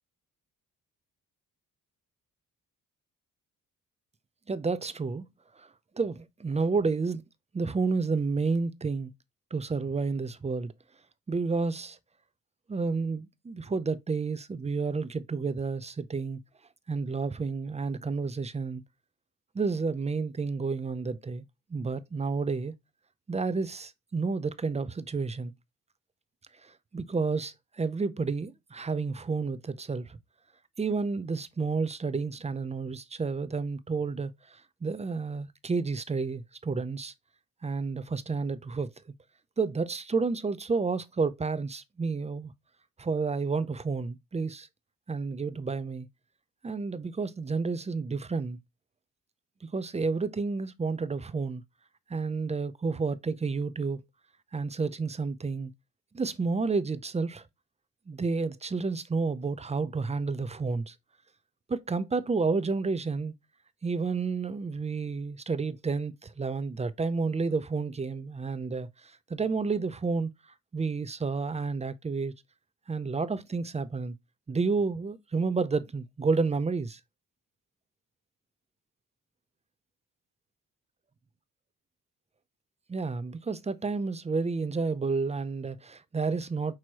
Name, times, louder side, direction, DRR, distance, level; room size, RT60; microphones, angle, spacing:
voice 1, 4.5-5.3 5.6-5.7 6.0-7.2 7.5-9.1 9.5-10.7 11.3-12.0 12.7-16.4 16.9-18.8 19.5-21.4 21.7-22.7 23.3-25.5 26.6-30.2 30.8-37.1 37.6-38.9 39.6-42.5 43.0-44.7 45.1-46.1 46.6-48.6 49.6-51.6 52.1-54.0 54.5-55.7 56.1-57.4 58.1-60.9 61.7-63.3 63.8-70.3 70.7-72.3 72.9-74.1 74.5-77.0 82.9-86.8, right 4 dB, 20° right, 0.5 m, -30 dB
6.1 x 3.0 x 2.8 m
cardioid pair, 75°, 34 cm